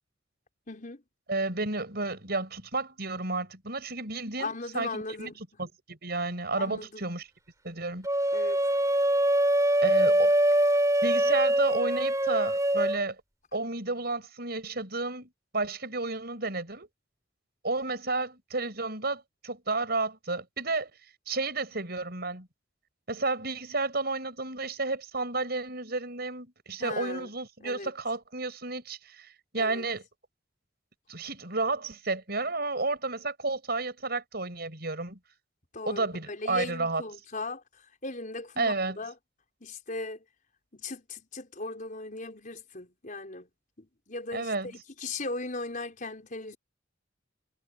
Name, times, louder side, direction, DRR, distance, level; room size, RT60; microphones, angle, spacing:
voice 1, 0.7-1.0 4.4-5.4 6.5-7.1 8.3-8.6 26.8-27.3 27.6-27.9 29.6-29.8 35.7-37.6 38.0-39.1 39.6-40.2 40.7-43.5 43.8-46.6, left 2 dB, 45° left, 5.2 m, -38 dB
voice 2, 1.3-7.2 7.6-8.1 9.8-10.3 11.0-13.2 13.5-16.9 17.6-20.9 21.3-22.5 23.1-30.0 31.1-35.2 35.9-37.0 38.6-39.0 44.3-44.7, right 3 dB, 55° right, 6.9 m, -32 dB
sound 1, 8.0-13.0, right 1 dB, 15° right, 4.6 m, -24 dB
head